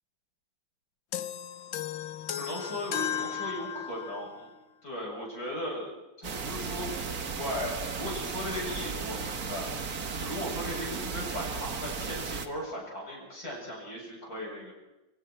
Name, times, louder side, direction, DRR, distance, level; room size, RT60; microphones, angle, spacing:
sound 1, 1.1-4.3, left 9 dB, 80° left, 1.8 m, -35 dB
voice 1, 2.4-4.5 4.8-9.7 10.2-14.7, equal, 50° left, -2 dB, 8.2 m, -37 dB
sound 2, 6.2-12.5, right 5 dB, 50° right, 2.0 m, -35 dB
27.0 x 26.5 x 4.5 m, 0.97 s
omnidirectional pair, 2.1 m